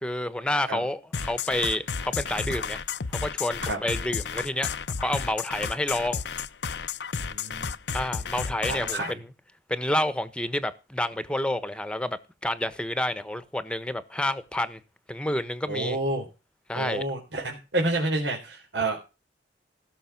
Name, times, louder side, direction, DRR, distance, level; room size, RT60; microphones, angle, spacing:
voice 1, 0.0-2.8 3.1-6.2 7.9-9.3 9.7-14.8 15.1-16.0 16.7-17.0, left 1 dB, 5° left, 1.2 m, -29 dB
sound 1, 1.1-9.1, left 6 dB, 70° left, 0.7 m, -32 dB
voice 2, 7.3-7.7 8.7-9.2 15.7-16.3 16.7-19.0, right 2 dB, 85° right, 3.9 m, -29 dB
17.5 x 6.3 x 6.1 m
head